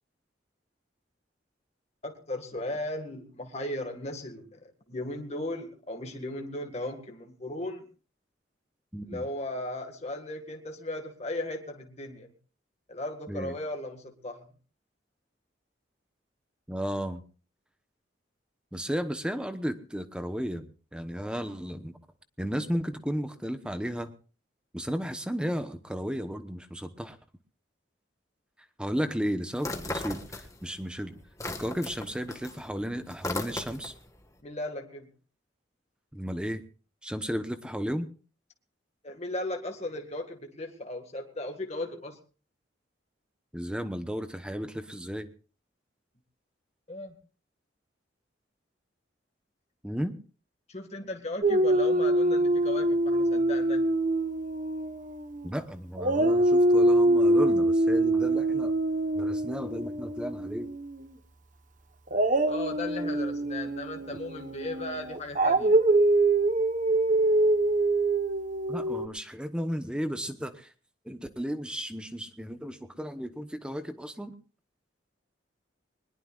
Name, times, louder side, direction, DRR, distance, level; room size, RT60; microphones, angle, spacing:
voice 1, 2.0-7.9 9.0-12.3 12.9-14.5 34.4-35.1 39.0-42.2 46.9-47.2 50.7-53.9 62.5-65.8, left 1 dB, 35° left, 3 dB, 1.9 m, -37 dB
voice 2, 8.9-9.2 13.3-13.5 16.7-17.2 18.7-22.0 22.4-24.1 24.7-27.2 28.8-31.2 31.5-33.9 36.1-36.6 37.0-38.1 43.5-45.3 49.8-50.1 55.4-58.7 59.1-60.7 68.7-70.7 71.0-74.3, equal, 5° right, 8 dB, 1.0 m, -34 dB
sound 1, 29.6-30.8 31.1-34.1, left 2 dB, 15° left, 1.7 m, -36 dB
Dog, 51.4-55.6 56.0-61.0 62.1-69.1, right 1 dB, 45° right, 1.2 m, -24 dB
22.0 x 21.0 x 2.5 m, 0.38 s
head